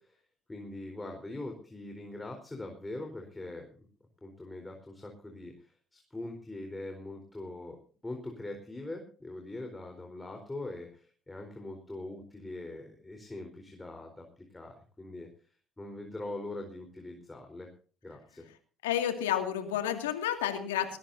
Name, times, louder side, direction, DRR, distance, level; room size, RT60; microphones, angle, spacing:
voice 1, 0.5-3.8 4.2-7.8 8.0-15.3 15.8-17.7 18.0-18.5, left 2 dB, 15° left, 3 dB, 4.1 m, -42 dB
voice 2, 18.8-21.0, left 10 dB, 90° left, 6 dB, 2.3 m, -30 dB
20.0 x 17.0 x 2.7 m, 0.41 s
hypercardioid pair, 60°, 0 cm